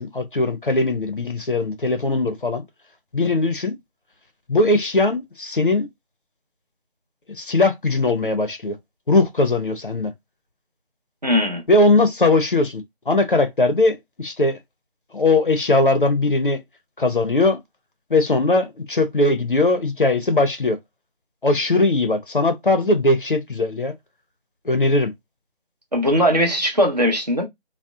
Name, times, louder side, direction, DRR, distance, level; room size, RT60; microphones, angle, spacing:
voice 1, 0.0-2.6 3.1-3.7 4.5-5.9 7.4-8.8 9.1-10.1 11.7-14.6 15.1-16.6 17.0-17.6 18.1-20.8 21.4-23.9 24.7-25.1, left 2 dB, 55° left, 0.5 m, -19 dB
voice 2, 11.2-11.6 25.9-27.4, equal, 40° right, 0.7 m, -19 dB
2.8 x 2.0 x 2.3 m
figure-of-eight pair, 170°, 32 cm